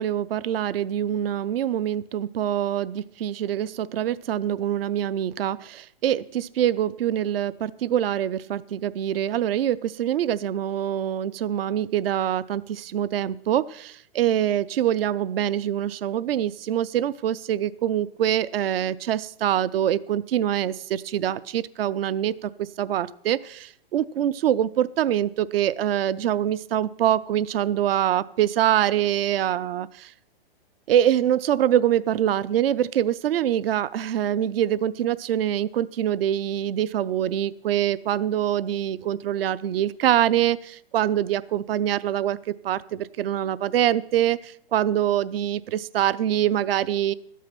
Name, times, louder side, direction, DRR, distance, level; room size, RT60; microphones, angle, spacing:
voice 1, 0.0-30.1 30.9-42.4 42.6-47.1, right 11 dB, 75° right, 18 dB, 0.5 m, -24 dB
13.0 x 8.3 x 5.9 m, 0.65 s
hypercardioid pair, 135°, 30 cm